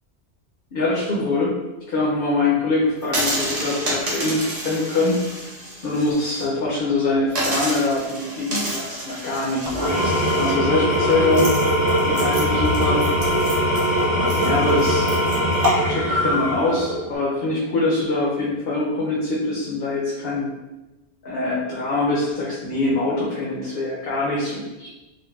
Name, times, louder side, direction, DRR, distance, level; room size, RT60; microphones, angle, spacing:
voice 1, 0.7-1.5 1.9-5.5 5.8-11.5 12.1-13.1 13.5-13.6 14.1-15.2 15.9-20.5 21.2-24.9, left 2 dB, 60° left, -5 dB, 0.7 m, -24 dB
sound 1, 3.0-6.4 6.8-6.9 7.3-15.7, right 1 dB, 40° right, 0.8 m, -30 dB
Engine / Tools, 9.7-17.1, equal, 90° right, 1.1 m, -21 dB
3.8 x 2.1 x 2.3 m, 1.0 s
omnidirectional pair, 1.1 m